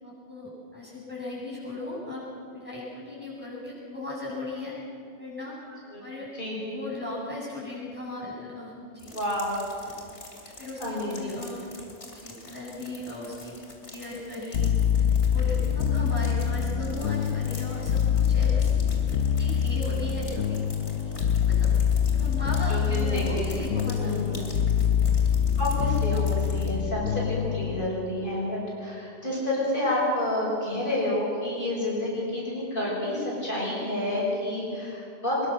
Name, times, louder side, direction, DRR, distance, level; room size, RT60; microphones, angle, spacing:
voice 1, 0.0-2.2 2.5-4.8 5.2-5.6 6.0-6.3 6.6-9.1 9.7-9.9 10.6-11.7 12.0-13.5 13.9-18.7 19.4-20.6 21.0-21.1 21.4-21.7 22.1-24.6, left 2 dB, 10° right, -7 dB, 7.6 m, -37 dB
voice 2, 6.3-6.8 9.1-9.6 10.8-11.4 22.7-23.5 24.0-24.4 25.6-35.4, left 1 dB, 45° left, -5 dB, 6.4 m, -29 dB
sound 1, 9.0-26.7, left 2 dB, 70° left, 3.3 m, -47 dB
sound 2, 14.5-27.9, left 8 dB, 90° left, 1.1 m, -25 dB
23.0 x 21.5 x 6.4 m, 2.5 s
omnidirectional pair, 1.2 m